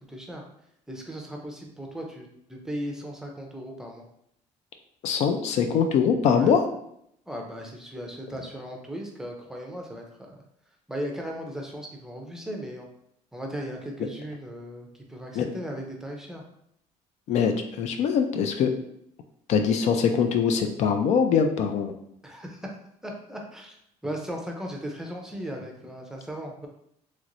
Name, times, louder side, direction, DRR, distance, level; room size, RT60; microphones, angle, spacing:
voice 1, 0.1-0.4 0.9-4.1 6.3-6.5 7.3-10.4 10.9-12.9 13.3-16.4 22.2-22.7 23.0-23.8 24.0-26.7, equal, 5° right, 0 dB, 0.5 m, -37 dB
voice 2, 5.0-6.6 15.3-15.4 17.3-18.7 19.5-21.9, left 6 dB, 65° left, 5 dB, 0.4 m, -23 dB
3.0 x 3.0 x 2.5 m, 0.73 s
cardioid pair, 135°, 13 cm